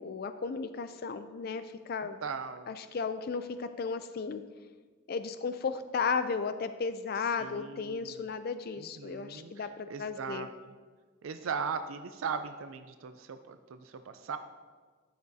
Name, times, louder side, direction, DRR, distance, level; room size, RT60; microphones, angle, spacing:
voice 1, 0.0-2.2 2.7-4.4 5.1-10.5, left 5 dB, 50° left, 10 dB, 0.4 m, -34 dB
voice 2, 2.2-2.7 7.2-8.3 8.8-10.5 11.2-14.4, right 6 dB, 90° right, 8 dB, 0.4 m, -39 dB
12.5 x 8.6 x 2.7 m, 1.5 s
head